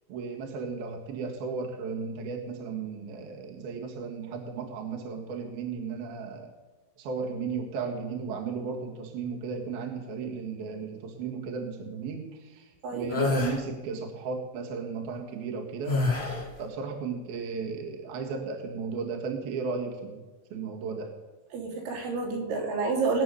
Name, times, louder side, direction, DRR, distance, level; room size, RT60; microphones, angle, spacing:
voice 1, 0.1-6.5 7.0-16.0 16.6-20.2 20.5-21.2, right 5 dB, 60° right, 0 dB, 3.3 m, -35 dB
sound 1, 13.1-13.6 15.9-16.5, left 3 dB, 25° left, 1.4 m, -26 dB
voice 2, 21.5-23.2, right 4 dB, 75° right, -2 dB, 5.4 m, -29 dB
21.0 x 9.3 x 7.0 m, 1.2 s
omnidirectional pair, 5.4 m